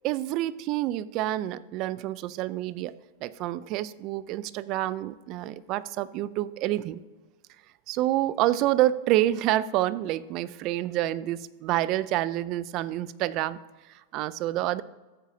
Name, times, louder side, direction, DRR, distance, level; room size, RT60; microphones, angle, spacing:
voice 1, 0.0-2.9 3.2-7.0 7.9-13.6 13.9-14.8, right 14 dB, 45° right, 18 dB, 0.4 m, -28 dB
14.0 x 8.2 x 2.7 m, 1.2 s
supercardioid pair, 140°, 0 cm